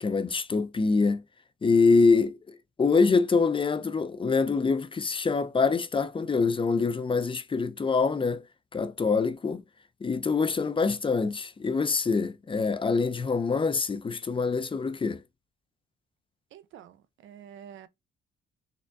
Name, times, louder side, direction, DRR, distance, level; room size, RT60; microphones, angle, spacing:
voice 1, 0.0-1.2 1.6-8.4 8.7-9.6 10.0-15.2, left 4 dB, 25° left, 0.5 m, -25 dB
voice 2, 16.5-17.9, right 9 dB, 80° right, 0.7 m, -48 dB
4.1 x 3.4 x 2.6 m
cardioid pair, 90°, 20 cm